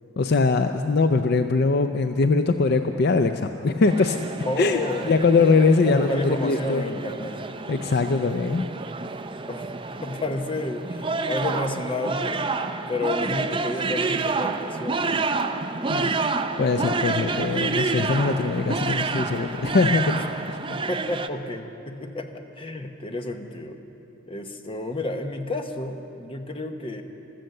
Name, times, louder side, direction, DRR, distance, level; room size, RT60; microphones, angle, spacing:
voice 1, 0.2-4.2 4.6-4.8 5.1-6.9 7.7-8.7 15.9-16.1 16.6-20.2, left 4 dB, 55° left, 8 dB, 0.5 m, -21 dB
sound 1, 3.8-21.3, right 3 dB, 25° right, 0.4 m, -29 dB
voice 2, 4.4-7.4 9.5-9.7 9.9-12.4 12.9-15.2 20.1-20.3 20.7-23.8 24.3-27.0, left 2 dB, 25° left, 5 dB, 0.9 m, -31 dB
15.5 x 13.5 x 6.6 m, 2.8 s
head